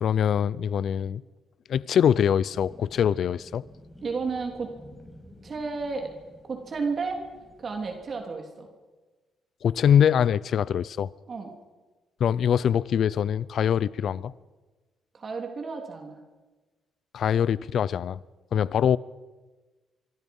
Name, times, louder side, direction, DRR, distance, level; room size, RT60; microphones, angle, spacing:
voice 1, 0.0-1.2 1.7-3.6 9.6-11.1 12.2-14.3 17.1-18.2 18.5-19.0, left 8 dB, 65° left, 0.6 m, -23 dB
sound 1, 2.5-8.2, left 1 dB, ahead, 5.8 m, -51 dB
voice 2, 4.0-4.7 5.4-6.1 6.5-7.2 7.6-8.7 11.3-11.5 15.1-16.2, right 4 dB, 45° right, 3.3 m, -32 dB
25.0 x 24.5 x 5.5 m
cardioid pair, 90°, 0 cm